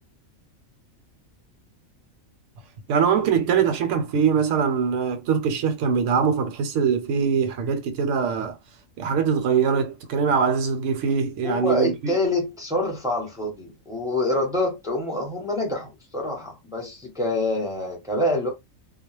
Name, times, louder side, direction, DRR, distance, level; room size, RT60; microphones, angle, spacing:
voice 1, 2.9-8.6 9.0-12.1, right 6 dB, 70° right, 0.9 m, -22 dB
voice 2, 11.4-18.5, left 1 dB, 5° right, 0.5 m, -26 dB
2.3 x 2.0 x 3.0 m
omnidirectional pair, 1.4 m